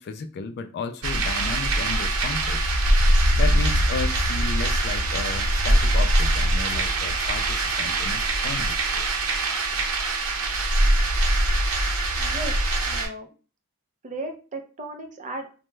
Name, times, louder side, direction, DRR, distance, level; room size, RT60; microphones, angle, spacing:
voice 1, 0.0-2.6 3.4-9.0, left 5 dB, 50° left, 0.3 m, -34 dB
sound 1, 1.0-13.1, right 1 dB, 70° right, 0.8 m, -22 dB
voice 2, 12.2-13.3 14.0-15.5, right 2 dB, 35° right, 0.6 m, -36 dB
3.0 x 2.2 x 3.2 m
head